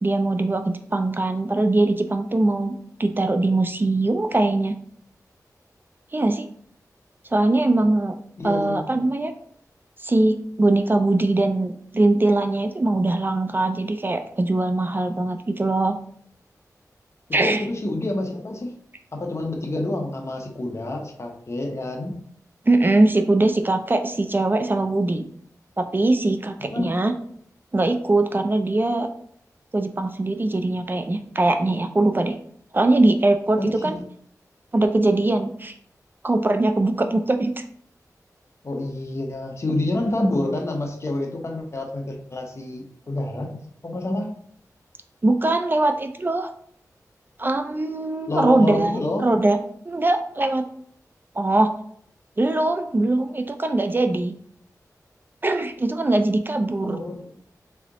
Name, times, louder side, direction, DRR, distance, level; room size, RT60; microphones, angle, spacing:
voice 1, 0.0-4.8 6.1-6.5 7.3-8.2 8.4-9.3 10.0-16.0 17.3-17.6 22.7-25.2 25.8-27.1 27.7-29.1 29.7-32.4 32.7-34.0 34.7-35.7 36.2-37.5 45.2-46.5 47.4-49.6 49.9-50.7 51.4-51.7 52.4-54.3 55.4-57.0, right 2 dB, 30° right, 6 dB, 0.4 m, -21 dB
voice 2, 8.4-9.0 17.4-18.8 19.1-22.2 26.7-27.0 33.6-33.9 38.6-44.3 48.3-49.3 56.8-57.3, left 1 dB, 45° left, 1 dB, 1.0 m, -28 dB
3.8 x 3.4 x 3.6 m, 0.63 s
wide cardioid pair, 65°, 7 cm